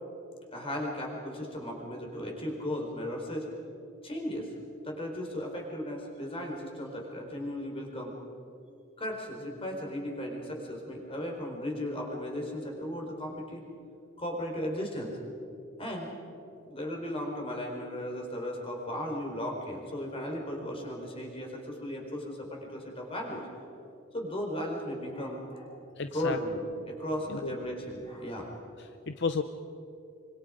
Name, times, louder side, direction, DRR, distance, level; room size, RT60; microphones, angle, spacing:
voice 1, 0.5-3.5 4.0-4.5 4.8-8.1 9.0-13.6 14.2-15.1 15.8-16.1 16.7-23.7 24.1-25.7 26.1-26.6 26.9-28.5, equal, 30° left, 1 dB, 4.4 m, -36 dB
voice 2, 26.0-26.4 27.3-27.6 28.8-29.4, left 4 dB, 65° left, 8 dB, 0.8 m, -32 dB
26.5 x 25.0 x 5.1 m, 2.6 s
head